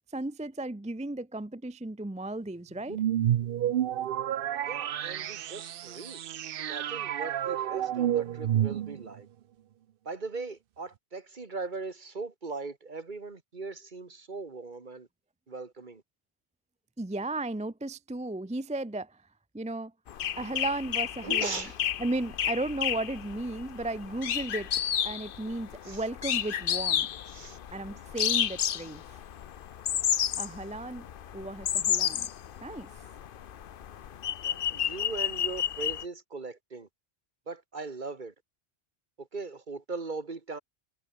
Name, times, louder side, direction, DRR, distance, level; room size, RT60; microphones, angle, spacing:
voice 1, 0.1-3.0 17.0-19.2 19.5-19.9 20.4-21.6 22.0-24.7 25.0-27.1 27.7-29.0 30.4-31.0 31.3-32.3 32.6-32.9, right 2 dB, 10° right, 0.5 m, -34 dB
sound 1, 2.9-9.2, right 11 dB, 65° right, 0.8 m, -30 dB
voice 2, 4.7-6.2 6.6-9.3 10.1-15.1 15.5-16.0 21.2-21.8 25.8-26.0 27.3-27.6 34.4-36.9 37.5-38.3 39.2-40.6, right 3 dB, 50° right, 1.8 m, -39 dB
sound 2, 20.1-36.0, left 9 dB, 60° left, 0.8 m, -32 dB
omnidirectional pair, 1.0 m